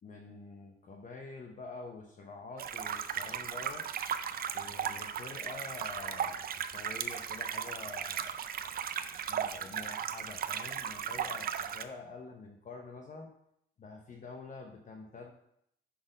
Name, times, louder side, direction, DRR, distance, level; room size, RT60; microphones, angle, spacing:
voice 1, 0.0-3.9 4.5-8.4 9.3-13.3 13.8-15.3, left 3 dB, 40° left, 2 dB, 0.8 m, -47 dB
sound 1, 2.6-11.8, right 8 dB, 50° right, 0.4 m, -36 dB
5.8 x 4.2 x 5.0 m, 0.74 s
cardioid pair, 90°, 20 cm